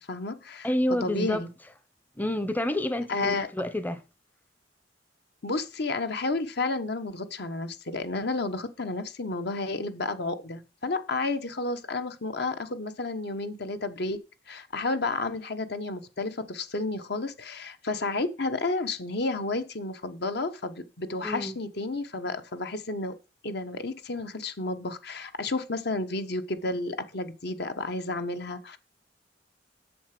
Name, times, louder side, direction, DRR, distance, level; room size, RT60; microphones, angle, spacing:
voice 1, 0.0-0.7 1.0-1.5 3.1-3.5 5.4-14.2 14.5-23.1 23.4-28.8, left 3 dB, 65° left, 1.2 m, -31 dB
voice 2, 0.6-1.4 2.2-4.0 21.2-21.6, left 1 dB, 10° left, 0.7 m, -28 dB
8.4 x 6.8 x 5.9 m
head